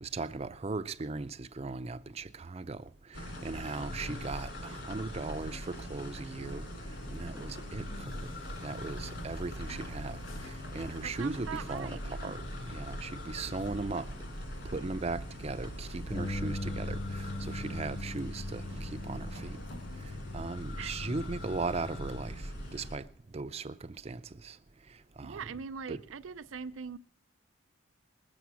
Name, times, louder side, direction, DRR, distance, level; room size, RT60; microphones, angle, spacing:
voice 1, 0.0-6.6 7.1-7.9 8.2-8.3 8.6-12.4 12.7-14.1 14.6-19.6 20.3-23.1 23.3-23.7 24.0-24.6 25.2-25.6 25.9-26.0, right 3 dB, 30° right, 0.5 m, -38 dB
sound 1, 3.1-23.0, equal, 60° left, 2.8 m, -42 dB
Bus, 6.3-20.4, left 2 dB, 80° left, 0.9 m, -50 dB
voice 2, 11.0-12.3 20.8-20.9 25.2-27.0, right 6 dB, 90° right, 0.5 m, -42 dB
Bass guitar, 16.1-22.4, left 2 dB, 15° left, 0.7 m, -41 dB
20.5 x 7.1 x 6.2 m
head